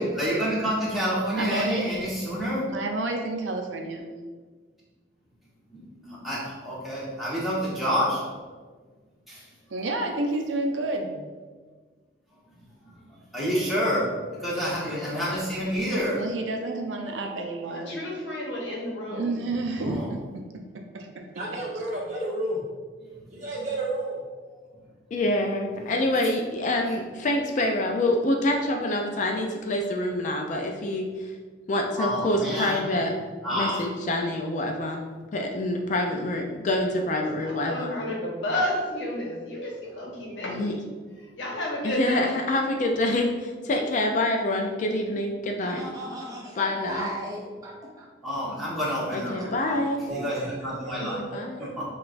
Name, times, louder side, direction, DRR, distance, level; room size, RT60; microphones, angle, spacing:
voice 1, 0.0-2.7 5.7-8.2 9.3-9.4 12.8-12.9 13.3-16.2 19.8-20.1 32.0-32.9 33.4-33.8 48.2-49.8 50.1-50.4 50.6-51.2 51.6-51.8, equal, ahead, -8 dB, 1.1 m, -28 dB
voice 2, 1.4-2.0 2.7-4.2 9.7-11.2 16.1-18.0 19.1-20.2 20.9-21.3, right 2 dB, 90° right, 3 dB, 0.5 m, -30 dB
voice 3, 17.7-19.4 37.4-40.8 41.4-42.4, left 1 dB, 80° left, -2 dB, 0.9 m, -31 dB
voice 4, 21.3-22.6 23.3-24.1 50.0-51.7, right 1 dB, 40° right, -6 dB, 1.1 m, -32 dB
voice 5, 25.1-31.4 31.7-33.1 33.5-35.0 35.3-38.0 40.5-40.7 41.8-45.9 46.5-47.1 49.1-50.0 51.0-51.6, left 1 dB, 40° left, 2 dB, 0.3 m, -26 dB
voice 6, 45.7-47.7 48.0-48.1 49.4-49.5, right 1 dB, 20° right, -3 dB, 0.4 m, -35 dB
5.7 x 2.3 x 2.5 m, 1.4 s
head